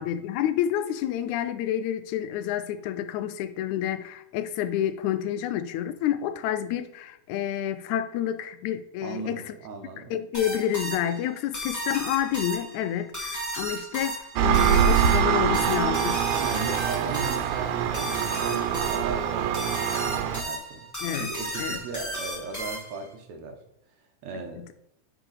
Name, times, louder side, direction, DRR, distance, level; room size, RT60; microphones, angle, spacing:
voice 1, 0.0-9.5 10.1-16.2 21.0-21.3 21.6-21.8, left 11 dB, 80° left, 1.9 m, -29 dB
voice 2, 9.0-10.1 14.7-14.9 16.3-20.8 21.1-23.6 24.2-24.7, right 4 dB, 70° right, 2.0 m, -37 dB
sound 1, 10.3-23.1, right 1 dB, 10° left, 0.9 m, -35 dB
Engine, 14.4-20.4, right 9 dB, 90° right, 2.1 m, -24 dB
8.9 x 4.8 x 3.9 m
omnidirectional pair, 3.5 m